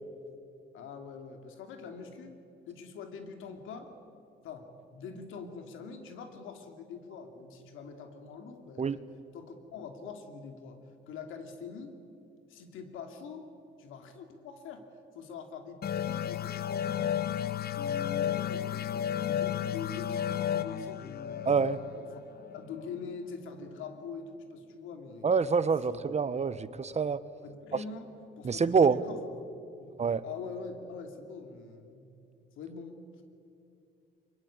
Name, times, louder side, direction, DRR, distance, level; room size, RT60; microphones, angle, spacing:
voice 1, 0.7-2.3 2.7-3.9 4.4-9.0 9.3-12.0 12.5-13.5 13.8-14.8 15.1-17.3 17.7-18.9 19.2-21.5 21.9-22.2 22.5-25.3 25.9-26.0 27.4-29.2 29.8-32.1 32.6-33.2, left 5 dB, 85° left, 5 dB, 2.7 m, -44 dB
sound 1, 15.8-23.1, left 10 dB, 50° left, 0.9 m, -33 dB
voice 2, 21.4-21.8 25.2-27.2 28.4-29.0 30.0-30.2, right 5 dB, 35° right, 15 dB, 0.9 m, -26 dB
23.0 x 22.5 x 8.8 m, 2.7 s
cardioid pair, 90°, 20 cm